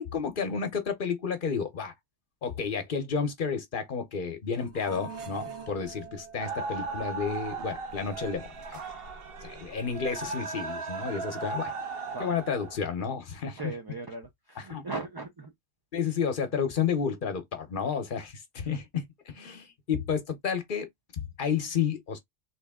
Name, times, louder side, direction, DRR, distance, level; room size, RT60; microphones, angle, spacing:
voice 1, 0.0-1.9 2.4-8.8 9.4-11.7 12.2-13.7 14.6-14.8 15.9-20.9 21.1-22.2, left 6 dB, 50° left, 0.9 m, -31 dB
sound 1, 4.6-10.3, right 4 dB, 85° right, 1.2 m, -46 dB
sound 2, 6.4-12.8, right 4 dB, 60° right, 1.0 m, -37 dB
voice 2, 13.6-15.5, right 3 dB, 35° right, 0.4 m, -38 dB
3.2 x 2.8 x 3.5 m
omnidirectional pair, 1.1 m